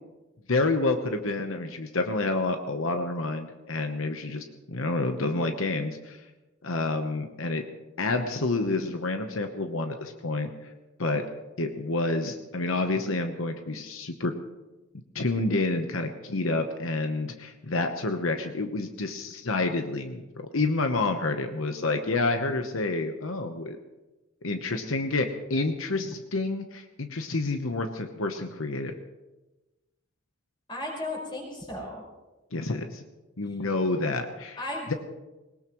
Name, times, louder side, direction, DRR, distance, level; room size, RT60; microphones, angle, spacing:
voice 1, 0.5-6.2 6.6-7.6 8.0-10.5 11.0-11.2 11.6-14.3 15.1-23.8 24.4-28.9 32.5-33.0 33.4-34.6, left 2 dB, 85° left, 6 dB, 1.0 m, -28 dB
voice 2, 30.7-32.0 34.6-35.0, left 1 dB, 25° left, -2 dB, 5.2 m, -35 dB
21.0 x 19.5 x 3.1 m, 1.1 s
head